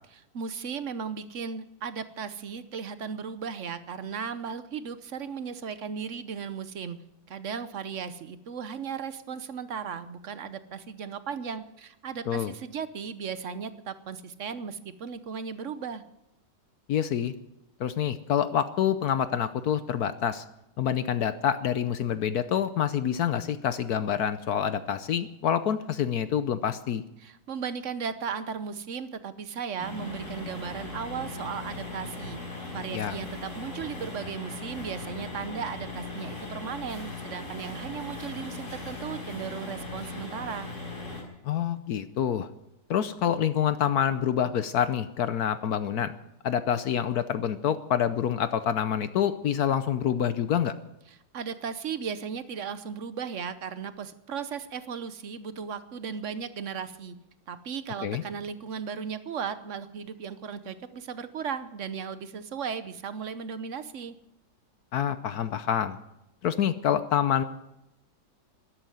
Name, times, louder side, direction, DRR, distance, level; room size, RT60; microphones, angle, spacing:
voice 1, 0.1-7.0 7.3-16.0 27.2-32.4 32.7-40.7 51.3-57.1 57.5-64.2, right 6 dB, 50° right, 13 dB, 1.0 m, -36 dB
voice 2, 16.9-17.3 17.8-20.4 20.8-27.0 32.9-33.2 41.4-42.5 42.9-46.1 46.4-50.7 58.0-58.2 64.9-66.0 66.4-67.4, left 9 dB, 65° left, 13 dB, 1.1 m, -27 dB
sound 1, 29.8-41.2, left 3 dB, 45° left, 4.7 m, -39 dB
13.0 x 11.5 x 9.2 m, 0.89 s
omnidirectional pair, 1.9 m